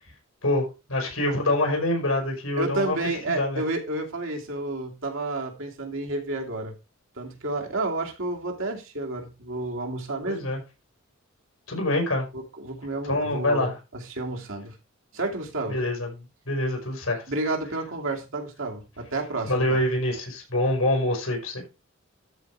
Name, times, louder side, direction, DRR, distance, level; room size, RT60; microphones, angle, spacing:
voice 1, 0.4-3.0 3.3-3.6 10.3-10.6 11.7-12.3 13.1-13.7 15.7-16.1 16.5-17.2 19.4-21.7, left 1 dB, 90° left, 5.3 m, -25 dB
voice 2, 2.6-6.7 7.2-10.5 12.3-14.8 15.1-15.8 17.3-19.8, right 2 dB, 70° right, 2.7 m, -31 dB
13.0 x 4.8 x 4.6 m
head